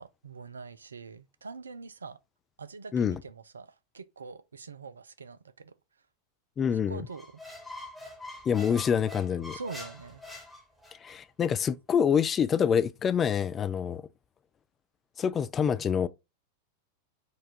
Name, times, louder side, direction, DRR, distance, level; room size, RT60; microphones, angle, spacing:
voice 1, 0.0-2.2 2.6-3.7 3.9-5.7 6.9-7.3 9.5-10.2, right 4 dB, 75° right, 0.4 m, -43 dB
voice 2, 6.6-7.0 8.5-9.6 11.0-14.0 15.2-16.1, left 7 dB, 25° left, 0.3 m, -26 dB
Squeak, 7.1-11.2, left 2 dB, ahead, 1.1 m, -44 dB
4.4 x 2.4 x 4.2 m
figure-of-eight pair, 90°, 0 cm